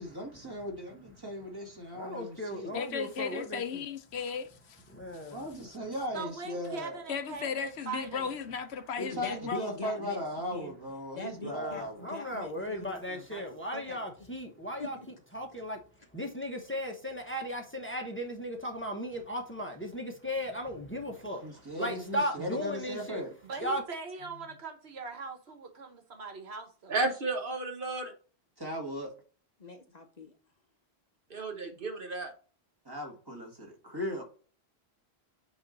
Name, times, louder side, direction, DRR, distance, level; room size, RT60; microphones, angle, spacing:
voice 1, 0.0-2.8 5.3-7.0 9.0-12.1 21.4-23.3 28.6-29.1 32.9-34.2, equal, 20° right, 2.0 m, -38 dB
voice 2, 1.9-3.8 4.9-5.4 11.4-15.8 16.1-21.4 21.8-23.2 23.6-23.8, equal, 10° left, 1.0 m, -36 dB
voice 3, 2.7-4.8 5.2-5.3 7.1-9.6, left 6 dB, 80° left, 0.9 m, -36 dB
voice 4, 6.1-8.3 23.4-27.0, right 4 dB, 75° right, 1.5 m, -41 dB
voice 5, 9.1-10.2 10.5-10.7 11.1-13.5 13.7-14.0 14.8-15.1 29.6-30.3, left 3 dB, 45° left, 0.9 m, -42 dB
voice 6, 26.9-28.1 31.3-32.3, right 3 dB, 55° right, 1.5 m, -32 dB
8.7 x 3.1 x 4.0 m
omnidirectional pair, 1.1 m